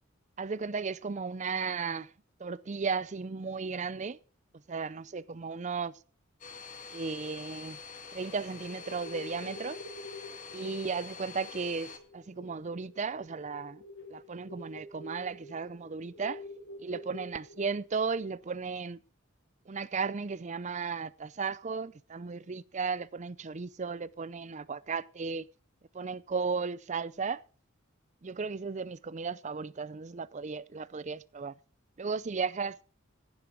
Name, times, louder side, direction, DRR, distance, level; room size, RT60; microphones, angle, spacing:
voice 1, 0.4-2.1 2.4-4.2 4.7-5.9 6.9-7.8 8.1-9.8 10.5-13.8 14.1-16.4 16.8-19.0 19.7-25.5 25.9-27.4 28.2-31.5 32.0-32.8, right 5 dB, 35° right, 0.5 m, -35 dB
Domestic sounds home sounds, 6.4-12.0, left 5 dB, 40° left, 1.7 m, -46 dB
sound 1, 8.5-17.8, left 1 dB, 80° left, 4.6 m, -48 dB
15.5 x 10.5 x 4.5 m
head